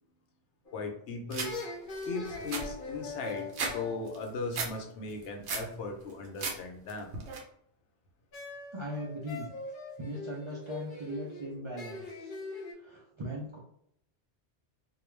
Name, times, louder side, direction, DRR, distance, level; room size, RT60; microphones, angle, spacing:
sound 1, 0.6-1.0 1.4-5.1 8.3-12.7, left 4 dB, 50° left, 0.8 m, -42 dB
voice 1, 0.7-1.6 2.0-7.1, left 3 dB, 80° left, 3 dB, 0.9 m, -38 dB
sound 2, 1.3-1.5 2.0-2.1 2.3-3.7 4.1-4.7 5.1-5.7 6.1-6.6 6.9-7.4, right 4 dB, 75° right, 0.9 m, -35 dB
voice 2, 8.7-9.5 10.0-12.3 12.7-13.6, equal, 45° right, -4 dB, 0.4 m, -39 dB
2.3 x 2.2 x 3.1 m, 0.71 s
omnidirectional pair, 1.2 m